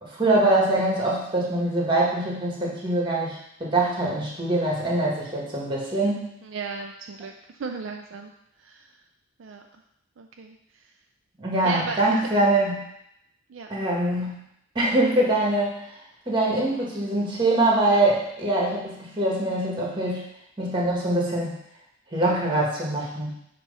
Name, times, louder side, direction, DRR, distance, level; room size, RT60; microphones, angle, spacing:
voice 1, 0.0-6.3 11.4-12.8 13.7-14.3 14.7-15.8 16.3-20.2 20.6-21.5 22.1-23.3, right 1 dB, 25° right, -3 dB, 1.6 m, -23 dB
voice 2, 6.4-7.3 7.6-8.3 8.6-8.9 9.4-9.6 10.2-10.6 11.6-12.0 13.5-13.7, right 5 dB, 65° right, 3 dB, 0.4 m, -35 dB
7.2 x 3.0 x 5.4 m, 0.78 s
head